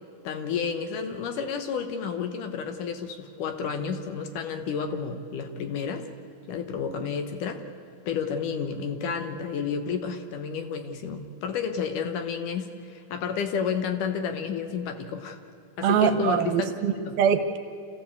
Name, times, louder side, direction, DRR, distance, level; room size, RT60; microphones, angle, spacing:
voice 1, 0.2-6.0 6.5-7.6 8.1-15.4 15.8-16.7 17.0-17.1, left 6 dB, 70° left, 7 dB, 2.4 m, -31 dB
voice 2, 15.8-17.6, right 8 dB, 80° right, 8 dB, 2.9 m, -23 dB
27.5 x 15.5 x 8.3 m, 2.5 s
omnidirectional pair, 4.2 m